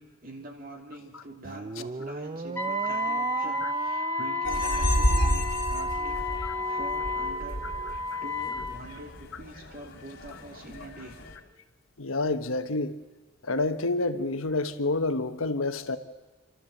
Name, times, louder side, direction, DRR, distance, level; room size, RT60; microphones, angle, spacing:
voice 1, 0.0-6.3 6.6-11.2, right 1 dB, 45° right, 2 dB, 3.1 m, -45 dB
sound 1, 1.4-8.0, right 3 dB, 30° right, 0.5 m, -38 dB
Wind instrument woodwind instrument, 2.6-8.8, left 1 dB, 10° left, 1.8 m, -31 dB
sound 2, 4.4-11.4, left 1 dB, 60° left, 3.0 m, -31 dB
voice 2, 12.0-13.0 13.4-16.0, left 2 dB, 80° left, 9 dB, 1.2 m, -28 dB
28.5 x 13.0 x 7.8 m, 1.3 s
head